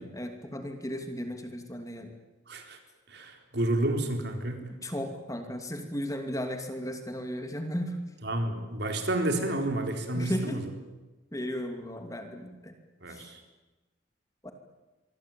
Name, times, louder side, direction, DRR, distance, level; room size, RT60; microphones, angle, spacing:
voice 1, 0.0-2.1 4.8-8.0 10.1-10.6 11.3-12.7 13.1-13.3 14.4-14.5, equal, 15° left, 5 dB, 2.6 m, -35 dB
voice 2, 2.5-2.8 3.1-4.7 8.2-10.7 13.0-13.4, right 1 dB, 55° right, 5 dB, 4.1 m, -30 dB
26.5 x 23.0 x 9.1 m, 1.1 s
head